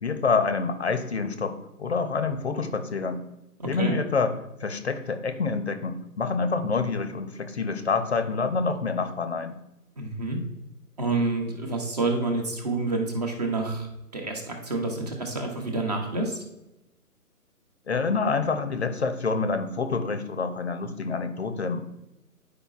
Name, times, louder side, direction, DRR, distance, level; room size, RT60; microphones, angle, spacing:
voice 1, 0.0-3.2 3.7-4.3 4.6-9.6 17.9-21.8, left 4 dB, 45° left, 9 dB, 0.7 m, -27 dB
voice 2, 3.6-3.9 10.0-10.4 11.0-16.4, right 3 dB, 25° right, 2 dB, 0.9 m, -28 dB
10.0 x 5.0 x 2.4 m, 0.90 s
figure-of-eight pair, 155°, 46 cm